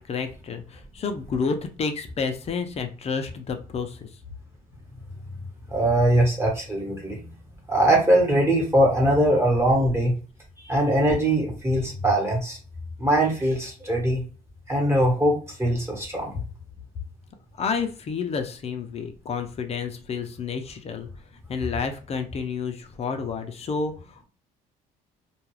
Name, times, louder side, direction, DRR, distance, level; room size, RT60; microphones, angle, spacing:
voice 1, 0.0-4.1 17.6-21.1 21.5-24.2, left 5 dB, 40° left, 6 dB, 0.5 m, -30 dB
voice 2, 5.7-7.3 7.7-10.1 10.6-12.6 13.0-14.2 14.7-16.4, right 1 dB, 15° right, -1 dB, 1.1 m, -21 dB
2.3 x 2.3 x 3.1 m, 0.37 s
cardioid pair, 110°, 17 cm